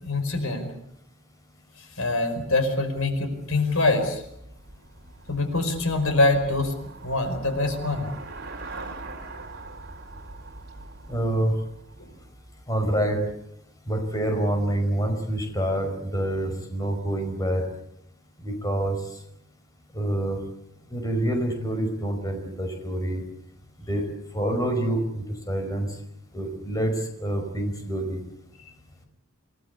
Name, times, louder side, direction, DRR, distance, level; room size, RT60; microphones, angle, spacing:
voice 1, 0.0-0.7 2.0-4.2 5.3-6.7 7.0-8.1 12.0-12.1, left 2 dB, 90° left, 7 dB, 5.2 m, -24 dB
Traffic noise roadway noise / Bicycle, 3.7-12.8, right 2 dB, 50° right, 4.4 m, -42 dB
voice 2, 11.1-11.5 12.7-13.2 13.9-17.6 18.4-19.0 19.9-20.4 20.9-23.2 23.9-24.0 24.3-25.9 26.3-26.9 27.2-28.2, right 1 dB, 15° left, 5 dB, 5.1 m, -26 dB
27.5 x 19.0 x 8.4 m, 0.77 s
head